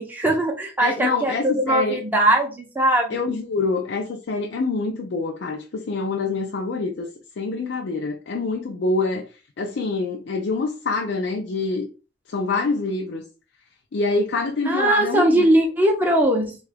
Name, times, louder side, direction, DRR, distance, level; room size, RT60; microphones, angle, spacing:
voice 1, 0.0-3.2 14.7-16.6, right 1 dB, 10° right, 0.6 m, -20 dB
voice 2, 0.8-2.0 3.1-7.1 7.4-9.3 9.6-11.9 12.3-13.3 13.9-15.5, left 3 dB, 75° left, 0.4 m, -25 dB
3.7 x 2.3 x 3.3 m
head